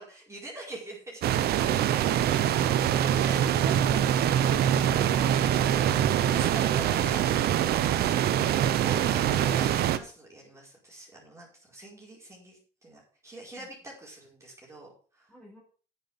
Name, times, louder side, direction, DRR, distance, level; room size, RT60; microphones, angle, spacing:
voice 1, 0.0-1.6 3.0-5.3 5.6-7.2 8.8-14.9 15.1-15.3, right 2 dB, 15° right, -4 dB, 4.9 m, -44 dB
sound 1, 1.2-10.0, right 10 dB, 70° right, 1.0 m, -24 dB
voice 2, 1.6-2.8 5.0-5.3 13.6-13.7 15.3-15.6, equal, 5° left, -2 dB, 4.8 m, -48 dB
9.7 x 7.4 x 5.8 m, 0.39 s
cardioid pair, 110°, 17 cm